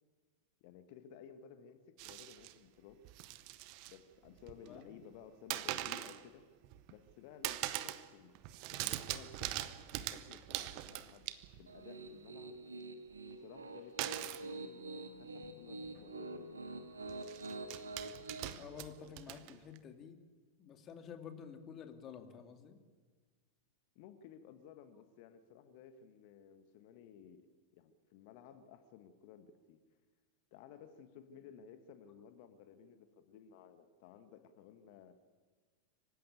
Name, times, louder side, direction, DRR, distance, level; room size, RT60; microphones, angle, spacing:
voice 1, 0.6-3.0 3.9-6.4 6.9-8.3 8.7-12.6 13.4-16.6 23.9-27.5 27.7-29.8 30.5-35.1, left 8 dB, 45° left, 10 dB, 1.5 m, -56 dB
sound 1, 2.0-2.5 3.0-4.0 4.3-4.8 5.5-6.2 6.6-7.1 7.4-8.1 8.3-11.7 14.0-14.5 15.4-15.5 15.8-16.0 17.1-19.8, right 15 dB, 45° right, 1.1 m, -42 dB
voice 2, 4.6-4.9 18.5-20.2 20.6-22.8, left 7 dB, 30° left, 6 dB, 2.6 m, -50 dB
Piano, 11.7-18.5, right 2 dB, 75° right, 2.0 m, -46 dB
25.0 x 15.5 x 9.3 m, 1.4 s
figure-of-eight pair, 90°, 0 cm